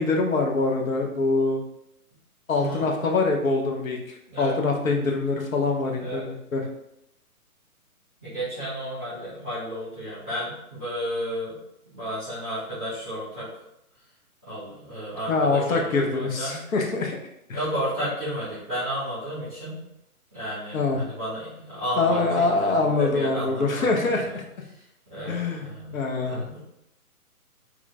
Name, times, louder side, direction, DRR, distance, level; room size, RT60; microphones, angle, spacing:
voice 1, 0.0-1.6 2.5-6.6 15.3-17.2 17.5-17.6 20.7-21.0 22.0-24.4 25.3-25.7 25.9-26.5, left 3 dB, 65° left, 1 dB, 0.8 m, -24 dB
voice 2, 5.9-6.3 8.2-11.6 11.9-13.5 14.4-16.6 17.5-19.8 20.3-24.4 24.7-24.8 25.1-26.6, equal, 5° left, -17 dB, 0.6 m, -33 dB
3.1 x 2.0 x 3.5 m, 0.80 s
hypercardioid pair, 150°, 45 cm